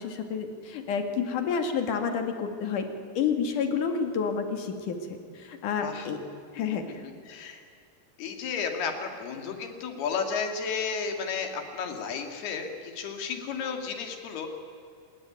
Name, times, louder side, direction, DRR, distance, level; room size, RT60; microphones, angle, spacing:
voice 1, 0.0-2.9 3.1-5.0 5.3-6.2 6.5-7.0, left 6 dB, 55° left, 6 dB, 3.3 m, -29 dB
voice 2, 7.3-7.6 8.2-14.5, left 5 dB, 75° left, 5 dB, 4.4 m, -33 dB
26.0 x 21.0 x 9.2 m, 2.4 s
omnidirectional pair, 4.7 m